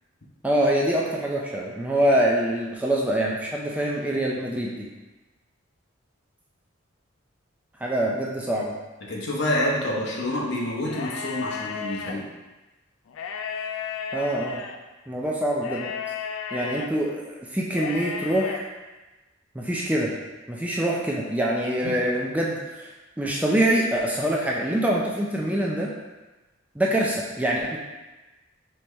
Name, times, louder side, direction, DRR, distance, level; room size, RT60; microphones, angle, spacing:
voice 1, 0.4-4.9 7.8-8.7 14.1-14.6 15.1-15.9 16.5-18.7 19.6-20.2 20.5-22.9 23.2-25.9 26.8-27.8, right 1 dB, 5° right, -3 dB, 0.4 m, -25 dB
voice 2, 9.1-12.2 21.8-21.9, left 1 dB, 60° left, -3 dB, 0.9 m, -27 dB
sound 1, 10.8-12.1 13.1-14.8 15.6-16.9 17.7-18.6, left 6 dB, 80° left, 0.4 m, -33 dB
4.2 x 3.2 x 3.3 m, 1.1 s
head